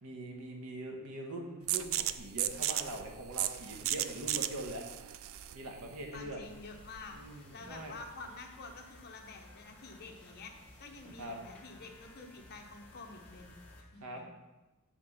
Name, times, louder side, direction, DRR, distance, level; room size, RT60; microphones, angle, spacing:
voice 1, 0.0-4.8 5.5-6.4 7.1-7.9 11.2-11.4 14.0-14.2, right 1 dB, 80° right, 1 dB, 1.2 m, -42 dB
sound 1, 1.7-7.2, right 12 dB, 65° right, 0.3 m, -36 dB
voice 2, 6.1-14.2, left 3 dB, 45° left, 3 dB, 0.9 m, -49 dB
sound 2, 6.4-13.8, left 1 dB, 5° left, 1.2 m, -56 dB
7.5 x 3.6 x 5.5 m, 1.1 s
head